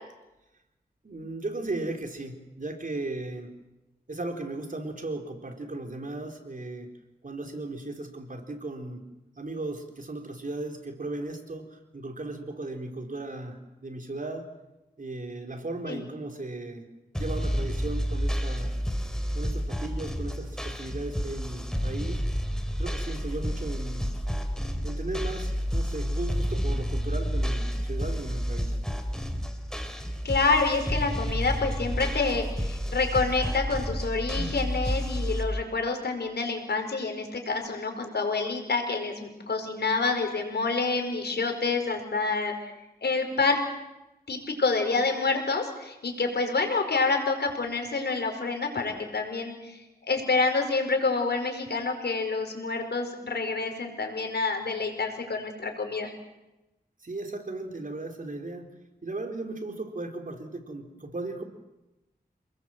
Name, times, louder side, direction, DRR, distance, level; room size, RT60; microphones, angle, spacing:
voice 1, 1.0-3.5 4.1-6.9 7.2-9.0 9.4-14.5 15.0-16.8 17.2-18.7 19.3-22.2 22.8-24.1 24.8-28.7 34.3-34.5 57.0-58.7 59.0-61.4, right 2 dB, 55° right, 4 dB, 4.1 m, -36 dB
sound 1, 17.1-35.4, equal, 5° left, 3.9 m, -30 dB
voice 2, 30.2-42.5 43.0-43.6 44.3-49.8 50.1-56.1, left 3 dB, 85° left, 4 dB, 5.1 m, -27 dB
29.0 x 20.5 x 7.7 m, 0.98 s
wide cardioid pair, 60°, 17 cm